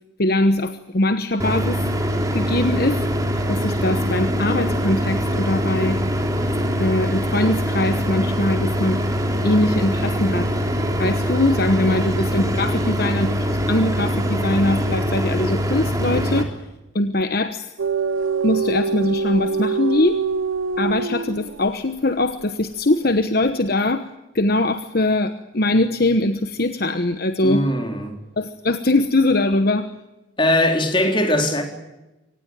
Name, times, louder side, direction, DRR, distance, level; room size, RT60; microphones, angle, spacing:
voice 1, 0.2-1.8 2.3-3.0 3.5-6.0 6.8-9.0 9.4-10.5 11.0-16.6 16.9-17.7 18.4-20.2 20.8-24.1 24.3-27.6 28.4-29.9, left 2 dB, 50° left, 1.1 m, -21 dB
sound 1, 1.4-16.4, equal, 20° right, 3.2 m, -23 dB
sound 2, 17.8-21.8, right 5 dB, 80° right, 0.8 m, -24 dB
voice 2, 27.4-28.2 30.4-31.6, left 1 dB, 25° left, 4.0 m, -20 dB
25.5 x 19.0 x 8.9 m
head